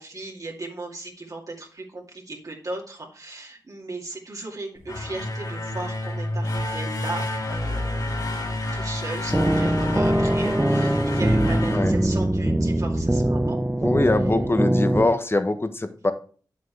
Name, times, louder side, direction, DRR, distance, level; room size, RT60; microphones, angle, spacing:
voice 1, 0.0-13.6, right 2 dB, 55° right, -1 dB, 2.3 m, -36 dB
sound 1, 4.7-12.7, left 1 dB, 65° left, 3.3 m, -29 dB
sound 2, 9.3-15.1, right 1 dB, 15° right, 1.0 m, -22 dB
voice 2, 13.8-16.1, left 2 dB, 35° left, 9 dB, 1.2 m, -23 dB
8.5 x 7.7 x 3.3 m, 0.41 s
cardioid pair, 45°, 7 cm